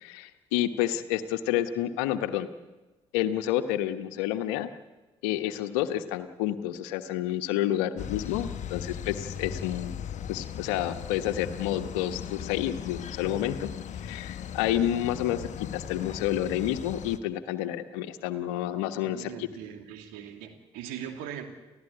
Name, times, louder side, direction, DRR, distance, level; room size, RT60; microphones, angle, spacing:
voice 1, 0.0-2.5 3.1-4.7 5.2-10.0 10.3-19.5, left 12 dB, 70° left, 10 dB, 1.3 m, -29 dB
sound 1, 8.0-17.2, left 8 dB, 50° left, 1.2 m, -38 dB
voice 2, 19.0-21.4, right 9 dB, 70° right, 5 dB, 2.7 m, -40 dB
29.0 x 15.0 x 8.5 m, 1.2 s
figure-of-eight pair, 45°, 15 cm